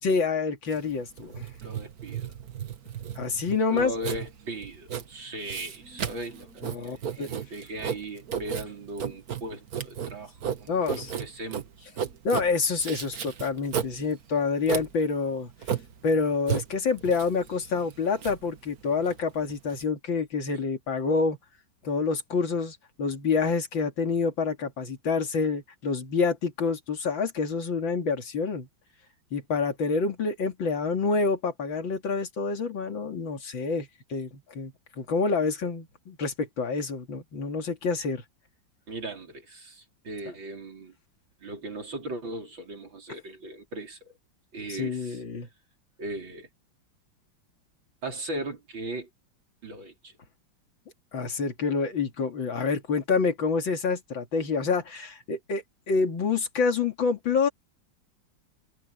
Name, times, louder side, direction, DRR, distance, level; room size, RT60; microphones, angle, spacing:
voice 1, 0.0-1.5 3.2-3.9 6.6-7.3 10.7-11.1 12.2-15.5 16.0-21.4 21.8-28.7 29.3-38.2 44.7-45.5 51.1-57.5, left 4 dB, 90° left, 3.2 m, -27 dB
Writing, 0.7-19.8, right 8 dB, 55° right, 1.7 m, -35 dB
voice 2, 1.6-2.4 3.7-11.9 38.9-40.9 41.4-44.1 44.5-45.2 46.0-46.5 48.0-49.1 49.6-50.1, right 1 dB, 80° right, 5.3 m, -38 dB
omnidirectional pair, 2.1 m